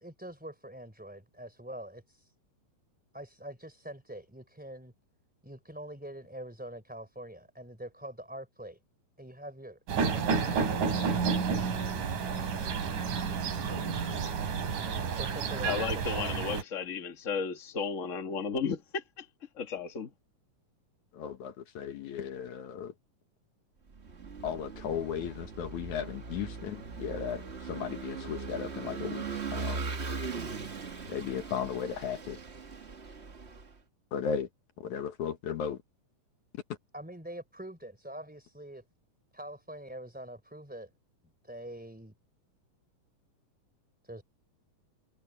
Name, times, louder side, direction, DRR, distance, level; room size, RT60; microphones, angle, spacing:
voice 1, 0.0-2.3 3.1-4.9 5.4-8.8 9.2-10.7 15.1-16.4 36.9-38.8 39.3-40.9 41.4-42.1 44.0-44.2, right 1 dB, 5° right, 3.1 m, -44 dB
sound 1, 9.9-16.6, right 5 dB, 70° right, 4.5 m, -30 dB
voice 2, 15.6-19.3 19.6-20.1, left 5 dB, 35° left, 1.3 m, -34 dB
voice 3, 21.1-22.9 24.4-29.8 31.1-32.4 34.1-34.5 34.8-35.8, left 8 dB, 70° left, 2.7 m, -36 dB
Vehicle / Engine, 23.9-33.7, right 4 dB, 50° right, 0.7 m, -39 dB
omnidirectional pair, 3.8 m